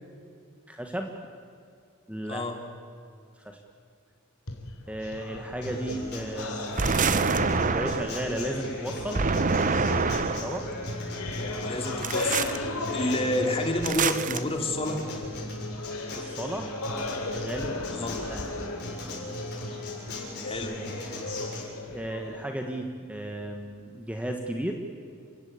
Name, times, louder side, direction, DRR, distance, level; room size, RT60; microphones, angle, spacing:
voice 1, 0.7-1.1 2.1-2.4 3.4-3.6 4.9-6.8 7.3-9.3 10.0-10.7 13.1-13.3 16.2-16.7 17.3-18.4 21.9-24.7, right 1 dB, 5° right, 3 dB, 1.5 m, -34 dB
sound 1, 4.5-14.2 14.5-22.4, left 2 dB, 80° left, 3.3 m, -38 dB
Acoustic guitar, 5.6-21.6, left 1 dB, 55° left, 7.6 m, -37 dB
sound 2, 6.8-8.2 9.1-10.6 12.0-12.6 13.8-14.4, right 4 dB, 40° right, 0.8 m, -26 dB
voice 2, 11.6-15.0 18.0-18.1 20.4-20.8, left 1 dB, 25° left, 4 dB, 2.8 m, -29 dB
29.0 x 16.5 x 8.6 m, 2.2 s
head